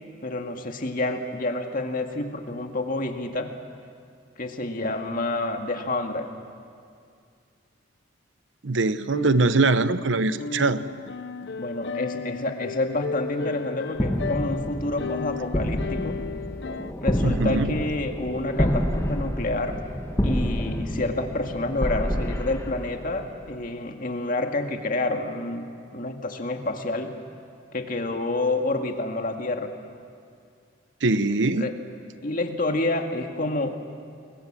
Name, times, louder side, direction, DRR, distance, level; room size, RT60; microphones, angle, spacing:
voice 1, 0.2-3.5 4.4-6.3 11.6-16.2 17.0-19.8 20.2-27.1 27.7-29.7 31.6-31.7 32.2-33.8, left 2 dB, 45° left, 4 dB, 2.0 m, -28 dB
voice 2, 8.6-10.8 17.2-17.7 31.0-31.7, right 3 dB, 70° right, 13 dB, 0.8 m, -22 dB
sound 1, 9.1-16.9, left 4 dB, 65° left, 0.6 m, -34 dB
sound 2, 13.9-23.5, equal, 15° left, 1.6 m, -28 dB
29.0 x 22.5 x 7.5 m, 2.3 s
head